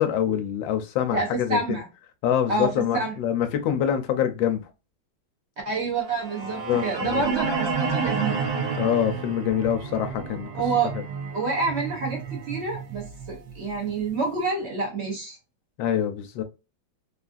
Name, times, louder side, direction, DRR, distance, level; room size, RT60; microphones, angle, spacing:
voice 1, 0.0-1.6 2.2-4.6 6.6-7.2 8.8-10.5 10.9-11.0 15.8-16.4, left 10 dB, 90° left, 1.3 m, -25 dB
voice 2, 1.1-1.9 2.5-3.1 5.6-8.4 10.5-10.9 11.3-15.4, right 4 dB, 50° right, 0.9 m, -28 dB
sound 1, 6.1-14.2, right 5 dB, 70° right, 0.5 m, -31 dB
3.5 x 2.4 x 2.4 m
omnidirectional pair, 2.0 m